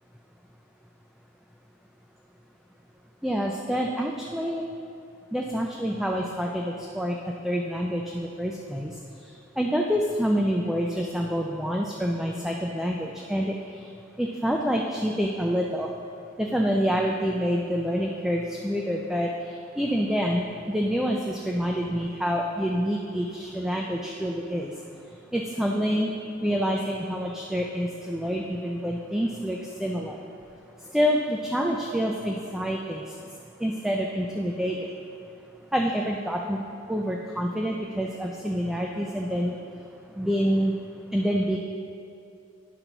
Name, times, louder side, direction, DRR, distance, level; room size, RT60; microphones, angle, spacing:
voice 1, 3.2-4.6 5.3-7.2 7.4-8.9 9.6-13.6 14.2-15.9 16.4-19.3 19.8-24.7 25.3-26.1 26.4-30.2 30.9-33.0 33.6-34.8 35.7-36.6 36.9-39.6 40.2-40.7 41.1-41.6, equal, 5° right, 0 dB, 0.4 m, -27 dB
10.0 x 3.9 x 6.0 m, 2.6 s
head